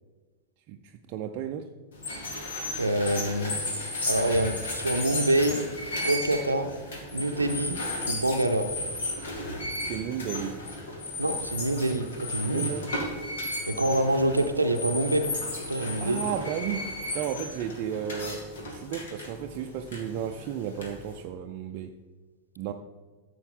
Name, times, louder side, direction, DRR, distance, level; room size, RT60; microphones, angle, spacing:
voice 1, 0.7-1.7 9.8-10.6 12.5-12.9 16.0-22.0 22.6-22.7, right 8 dB, 45° right, 0.5 m, -34 dB
sound 1, 1.9-21.2, left 2 dB, 65° left, 2.3 m, -34 dB
voice 2, 2.8-3.6 4.1-5.6 6.0-6.7 7.1-7.8 8.1-8.7 11.2-12.7 13.7-15.4 15.7-16.2 22.7-22.8, right 1 dB, 85° right, 0.7 m, -26 dB
13.0 x 7.7 x 3.9 m
figure-of-eight pair, 90°, 0 cm